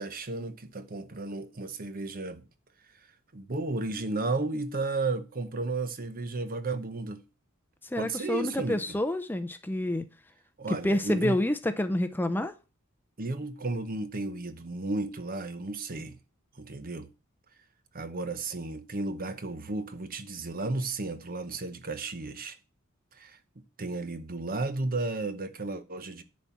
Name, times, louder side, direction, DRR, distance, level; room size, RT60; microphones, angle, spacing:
voice 1, 0.0-2.5 3.3-7.2 8.0-9.0 10.6-11.4 13.2-16.2 16.6-17.1 17.9-22.6 23.2-26.2, right 3 dB, 45° right, 0.9 m, -33 dB
voice 2, 7.9-10.1 10.7-12.5, left 1 dB, 10° left, 0.6 m, -28 dB
10.5 x 4.3 x 7.3 m
head